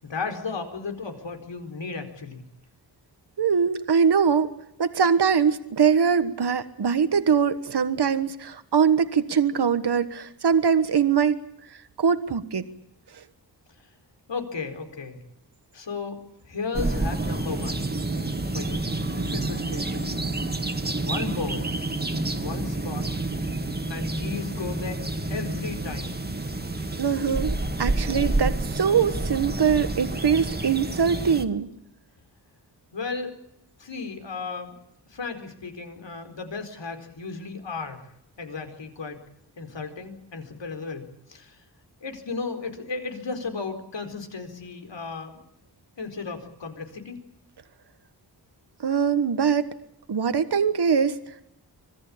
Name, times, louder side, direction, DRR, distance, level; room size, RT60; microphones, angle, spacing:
voice 1, 0.0-2.4 14.3-15.2 15.7-16.2 16.5-17.9 18.5-18.8 19.1-20.1 21.0-21.7 22.4-23.1 23.9-25.0 25.3-26.1 32.9-33.3 33.8-34.8 35.1-38.0 38.4-39.2 39.6-41.0 41.3-41.6 42.0-45.4 46.0-47.2, left 4 dB, 80° left, 6 dB, 4.6 m, -34 dB
voice 2, 3.4-4.5 4.8-11.4 12.0-12.6 27.0-31.7 48.8-49.7 50.1-51.2, right 6 dB, 65° right, 11 dB, 1.5 m, -22 dB
sound 1, 16.7-31.5, right 2 dB, 20° right, 2.0 m, -29 dB
26.0 x 18.5 x 8.6 m, 0.77 s
wide cardioid pair, 105°, 43 cm